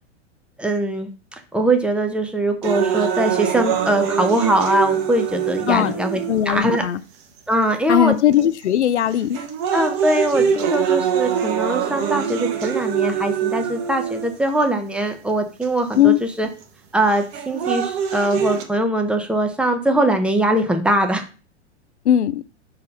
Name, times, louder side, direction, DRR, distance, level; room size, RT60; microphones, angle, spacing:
voice 1, 0.6-1.1 1.5-6.2 6.5-6.8 7.5-8.5 9.7-16.5 16.9-21.2, right 1 dB, 5° right, 0.9 m, -21 dB
sound 1, 2.6-6.6 7.4-7.5 8.3-8.6 9.1-14.6 15.6-15.7 17.1-18.6, right 8 dB, 45° right, 1.3 m, -23 dB
voice 2, 6.3-7.0 7.9-9.5 16.0-16.2 22.0-22.4, left 11 dB, 70° left, 0.6 m, -18 dB
5.4 x 4.1 x 5.4 m
figure-of-eight pair, 100°, 35 cm